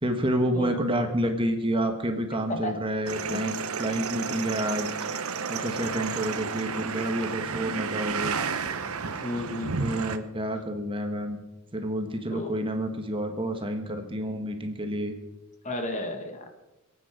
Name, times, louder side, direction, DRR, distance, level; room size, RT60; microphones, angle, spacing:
voice 1, 0.0-3.5 3.8-4.9 5.5-8.4 9.7-11.4 11.7-15.1, right 1 dB, 25° right, 5 dB, 1.5 m, -29 dB
voice 2, 2.5-2.8 3.3-3.4 9.2-9.7 12.3-12.5 15.6-16.5, left 1 dB, 35° left, 5 dB, 1.7 m, -32 dB
sound 1, 3.1-10.2, right 5 dB, 70° right, 1.0 m, -32 dB
26.5 x 9.3 x 5.1 m, 1.0 s
head